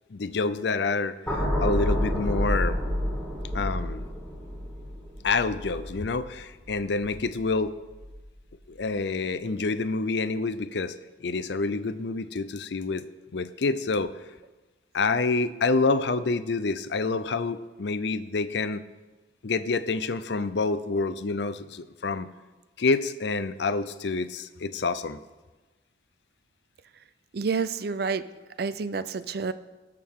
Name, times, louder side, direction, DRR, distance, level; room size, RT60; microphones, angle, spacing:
voice 1, 0.1-2.8 3.5-4.0 5.2-7.8 8.7-11.0 11.2-13.0 13.3-14.1 14.9-18.8 19.4-22.3 22.8-25.2, left 3 dB, 65° left, 13 dB, 0.5 m, -27 dB
sound 1, 1.3-7.5 7.9-8.2, equal, 5° left, 3.0 m, -29 dB
voice 2, 27.3-28.2 28.6-29.5, right 5 dB, 55° right, 14 dB, 0.4 m, -29 dB
19.0 x 6.7 x 3.7 m, 1.2 s
head